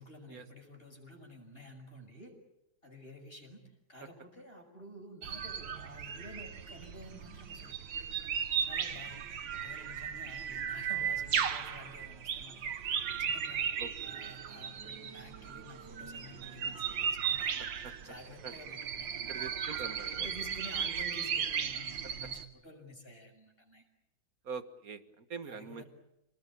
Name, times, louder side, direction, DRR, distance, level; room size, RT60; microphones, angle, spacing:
voice 1, 0.0-2.3 2.8-3.6 3.9-8.3 8.6-13.7 14.0-17.4 18.0-23.8 25.5-25.8, equal, 30° left, 3 dB, 6.2 m, -51 dB
sound 1, 5.2-22.5, right 7 dB, 70° right, 2.0 m, -36 dB
voice 2, 13.8-14.2 17.4-17.5 17.8-17.9 18.4-18.5 19.3-20.3 22.2-22.3 24.4-25.8, right 5 dB, 50° right, 10 dB, 1.8 m, -44 dB
29.0 x 20.0 x 8.6 m, 0.90 s
omnidirectional pair, 2.1 m